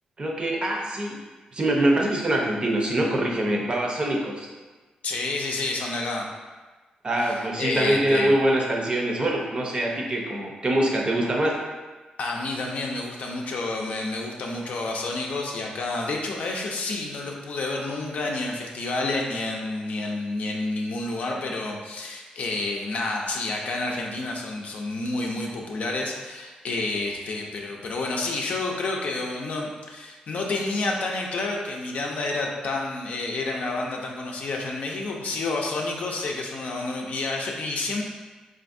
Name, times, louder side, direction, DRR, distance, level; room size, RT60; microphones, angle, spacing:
voice 1, 0.2-1.2 1.5-4.5 7.0-11.5, right 1 dB, 35° right, -1 dB, 0.6 m, -24 dB
voice 2, 5.0-6.3 7.2-8.4 12.2-38.0, left 2 dB, 65° left, 0 dB, 0.5 m, -29 dB
3.3 x 2.5 x 2.6 m, 1.3 s
cardioid pair, 80°, 3 cm